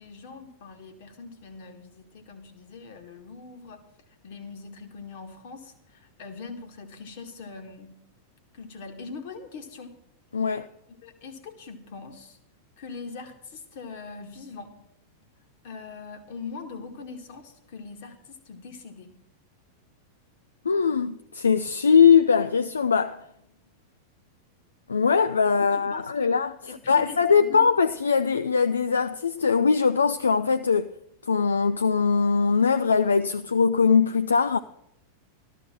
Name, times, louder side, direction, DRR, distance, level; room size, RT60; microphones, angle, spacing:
voice 1, 0.0-3.8 4.2-8.0 8.5-9.9 10.4-10.6 11.0-12.4 12.8-14.7 15.6-19.1 25.6-26.3 26.6-27.8, left 4 dB, 50° left, 1.8 m, -42 dB
voice 2, 10.3-10.7 20.7-23.2 24.9-26.5 26.9-30.9 31.2-34.6, left 6 dB, 75° left, 0.4 m, -21 dB
13.5 x 13.0 x 4.5 m
figure-of-eight pair, 90°, 0 cm